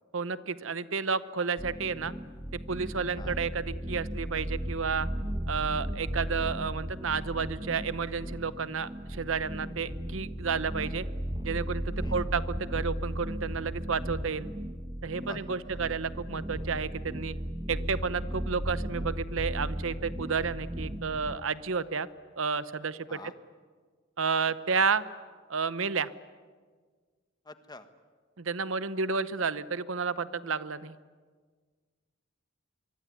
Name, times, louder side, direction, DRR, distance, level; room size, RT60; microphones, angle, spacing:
voice 1, 0.1-2.1 2.5-5.1 5.5-11.0 11.4-14.5 15.0-17.4 17.7-22.1 22.3-23.2 24.2-25.0 25.5-26.1 28.4-31.0, right 5 dB, 70° right, 15 dB, 0.9 m, -31 dB
sound 1, 1.6-21.4, equal, 20° right, 1.4 m, -36 dB
voice 2, 27.4-27.9, left 2 dB, 20° left, 10 dB, 1.4 m, -46 dB
25.0 x 23.5 x 9.6 m, 1.5 s
head